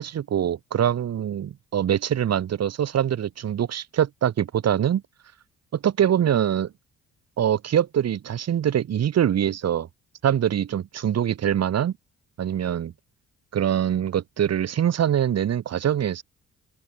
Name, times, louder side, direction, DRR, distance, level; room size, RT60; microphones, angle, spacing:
voice 1, 0.0-5.0 5.7-6.7 7.4-9.9 10.2-11.9 12.4-12.9 13.5-16.2, right 10 dB, 55° right, 2.0 m, -23 dB
open air
cardioid pair, 90°, 30 cm